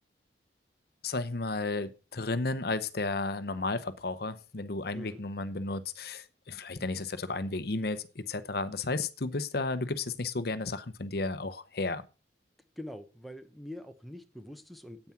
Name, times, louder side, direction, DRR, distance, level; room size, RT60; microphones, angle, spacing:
voice 1, 1.0-12.0, left 3 dB, 60° left, 0.8 m, -33 dB
voice 2, 12.8-15.1, left 1 dB, ahead, 1.0 m, -44 dB
9.4 x 8.9 x 5.9 m
head